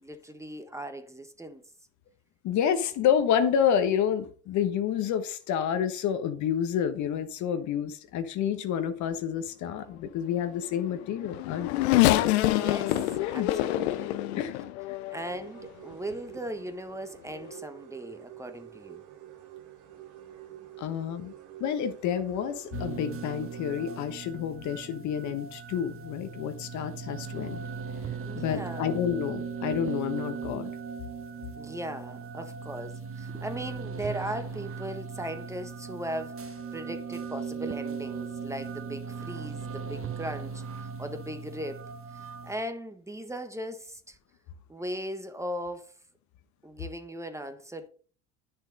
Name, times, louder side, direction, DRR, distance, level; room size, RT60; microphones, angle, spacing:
voice 1, 0.0-1.6 12.5-13.0 13.3-14.2 15.1-19.0 28.2-28.9 31.6-41.9 42.1-44.2 44.7-45.9 46.6-47.9, right 1 dB, 10° right, 1.3 m, -38 dB
voice 2, 2.4-11.9 13.2-13.5 14.4-14.5 20.8-21.3 21.6-27.6 28.3-30.7, left 8 dB, 60° left, 1.4 m, -29 dB
Race car auto racing / Accelerating revving vroom, 10.9-15.4 16.1-16.2 17.4-17.5, left 15 dB, 75° left, 0.8 m, -26 dB
sound 1, 15.2-24.1, right 12 dB, 60° right, 2.2 m, -48 dB
sound 2, 22.7-42.5, right 5 dB, 40° right, 1.5 m, -38 dB
9.7 x 6.8 x 4.1 m
hypercardioid pair, 70°, 33 cm